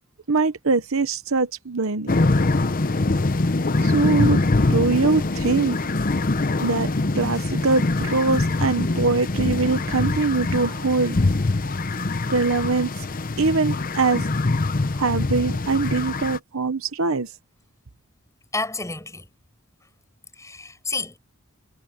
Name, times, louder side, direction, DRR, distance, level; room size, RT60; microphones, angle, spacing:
voice 1, 0.3-2.1 3.8-4.4 4.7-5.8 6.6-6.9 7.2-11.2 12.3-13.1 13.4-14.3 15.0-17.3, right 4 dB, 70° right, 1.0 m, -22 dB
sound 1, 2.1-16.4, left 2 dB, 40° left, 0.8 m, -23 dB
voice 2, 18.5-19.3 20.4-21.2, left 3 dB, 15° left, 7.1 m, -30 dB
head